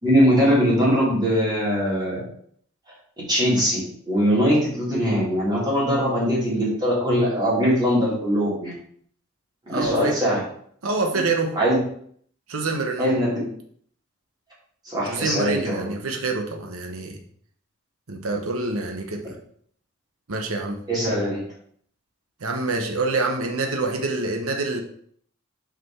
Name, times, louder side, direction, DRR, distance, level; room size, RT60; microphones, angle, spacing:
voice 1, 0.0-2.2 3.2-8.7 9.7-10.4 11.5-11.8 13.0-13.4 14.8-15.9 20.9-21.4, equal, 20° right, -7 dB, 3.4 m, -21 dB
voice 2, 9.7-10.2 10.8-11.6 12.5-13.1 15.0-17.2 18.1-19.4 20.3-20.8 22.4-24.8, right 3 dB, 70° right, 3 dB, 1.0 m, -26 dB
6.5 x 5.1 x 4.6 m, 0.62 s
head